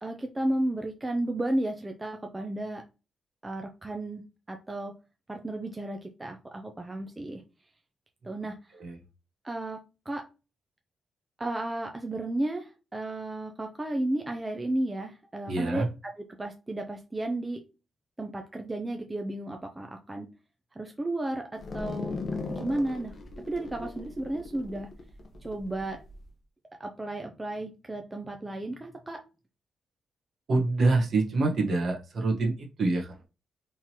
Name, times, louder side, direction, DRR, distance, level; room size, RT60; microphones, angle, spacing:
voice 1, 0.0-2.8 3.4-4.2 4.5-4.9 5.3-7.4 8.2-8.6 9.4-9.8 10.1-10.2 11.4-15.9 16.4-17.6 18.2-20.3 20.8-22.1 22.5-23.1 23.5-24.9 25.4-26.0 26.8-29.2, right 1 dB, 15° right, 3 dB, 0.5 m, -33 dB
voice 2, 15.5-15.9 30.5-33.2, right 3 dB, 50° right, 2 dB, 1.2 m, -26 dB
sound 1, 21.6-26.2, left 3 dB, 40° left, 1.0 m, -38 dB
4.4 x 3.7 x 2.9 m, 0.30 s
wide cardioid pair, 145°, 0 cm